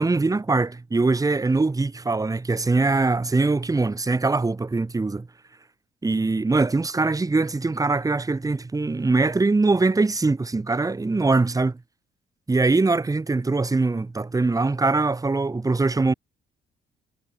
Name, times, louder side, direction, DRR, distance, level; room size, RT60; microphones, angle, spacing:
voice 1, 0.0-5.3 6.0-11.8 12.5-16.1, right 3 dB, 15° right, 1.2 m, -22 dB
cardioid pair, 90°, 20 cm